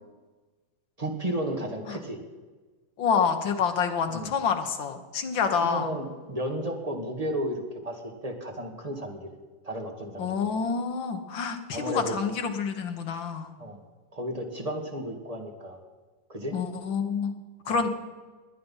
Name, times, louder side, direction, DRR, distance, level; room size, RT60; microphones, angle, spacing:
voice 1, 1.0-2.2 4.1-4.3 5.6-9.3 9.6-10.3 11.7-12.2 13.6-13.8 14.1-15.8 16.3-16.6 17.6-17.8, right 1 dB, 20° right, 2 dB, 1.8 m, -33 dB
voice 2, 3.0-5.9 10.2-13.5 16.5-17.3 17.7-17.9, left 6 dB, 65° left, 6 dB, 1.9 m, -27 dB
21.0 x 9.6 x 5.6 m, 1.3 s
omnidirectional pair, 2.3 m